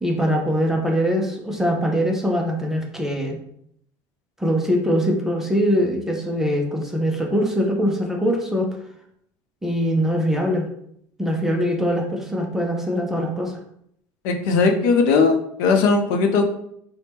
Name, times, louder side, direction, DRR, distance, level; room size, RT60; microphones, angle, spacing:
voice 1, 0.0-3.4 4.4-8.7 9.6-10.7 11.2-13.6, equal, 5° right, 0 dB, 0.4 m, -22 dB
voice 2, 14.2-16.4, left 4 dB, 75° left, 5 dB, 0.5 m, -18 dB
4.2 x 2.1 x 3.3 m, 0.72 s
cardioid pair, 170°, 10 cm